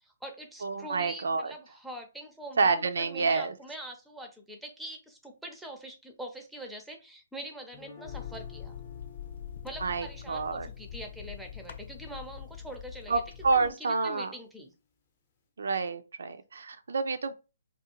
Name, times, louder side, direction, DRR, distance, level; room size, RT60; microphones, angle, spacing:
voice 1, 0.0-8.8 9.6-13.2 13.5-14.7, right 1 dB, ahead, 0.5 m, -44 dB
voice 2, 0.6-1.5 2.6-3.5 9.8-10.7 13.1-14.3 15.6-17.3, right 4 dB, 65° right, 0.3 m, -28 dB
Guitar, 7.7-13.7, left 5 dB, 35° left, 0.7 m, -54 dB
sound 1, 8.0-13.7, left 9 dB, 50° left, 0.3 m, -43 dB
2.4 x 2.3 x 2.9 m
figure-of-eight pair, 135°, 0 cm